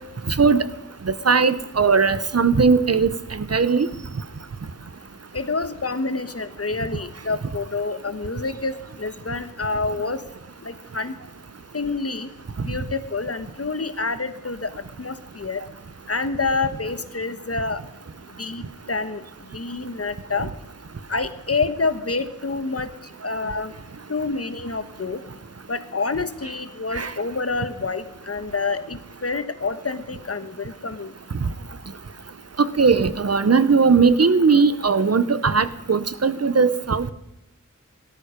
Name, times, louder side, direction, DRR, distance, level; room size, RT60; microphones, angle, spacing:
voice 1, 0.3-0.7 1.1-3.9 26.9-27.1 32.6-37.1, right 5 dB, 55° right, 15 dB, 1.0 m, -19 dB
voice 2, 5.3-10.2 10.6-11.1 11.7-12.3 12.6-15.6 16.1-17.8 18.4-19.2 19.5-20.5 21.1-23.7 24.1-25.2 25.7-31.1, left 3 dB, 50° left, 11 dB, 1.3 m, -28 dB
17.0 x 13.5 x 5.2 m, 0.87 s
wide cardioid pair, 55°, 30 cm